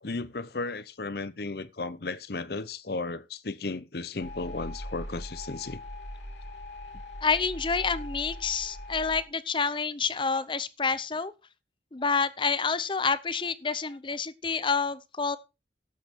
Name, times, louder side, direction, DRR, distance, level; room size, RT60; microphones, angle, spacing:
voice 1, 0.0-5.8, left 3 dB, 60° left, 0.8 m, -35 dB
sound 1, 4.2-9.2, left 1 dB, 85° left, 3.1 m, -40 dB
voice 2, 7.2-11.3 11.9-15.4, left 5 dB, 25° left, 0.7 m, -28 dB
12.5 x 8.3 x 4.5 m
head